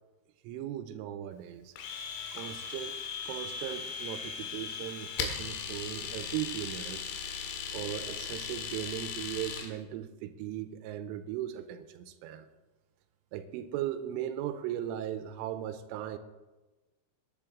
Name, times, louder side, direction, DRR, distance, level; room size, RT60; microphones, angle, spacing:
voice 1, 0.4-1.7 2.3-7.1 7.7-12.5 13.3-16.2, right 12 dB, 85° right, 3.1 m, -38 dB
Domestic sounds home sounds, 1.8-9.7, left 6 dB, 80° left, 3.9 m, -38 dB
19.5 x 10.5 x 3.6 m
omnidirectional pair, 5.8 m